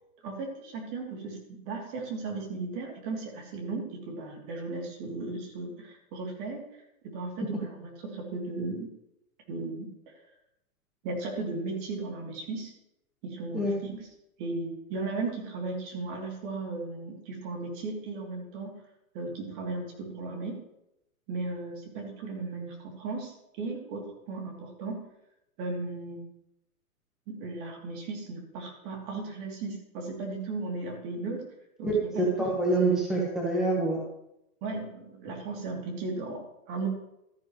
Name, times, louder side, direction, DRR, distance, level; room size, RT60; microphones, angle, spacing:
voice 1, 0.2-6.7 7.0-8.9 9.5-10.2 11.0-12.7 13.2-14.1 14.4-18.8 19.1-20.6 21.3-25.0 25.6-26.2 27.3-31.4 31.8-32.6 33.2-33.3 34.6-36.9, right 3 dB, 35° right, 0 dB, 3.0 m, -36 dB
voice 2, 31.8-34.0, right 2 dB, ahead, -4 dB, 1.3 m, -26 dB
13.5 x 10.0 x 3.2 m, 0.83 s
hypercardioid pair, 150°, 43 cm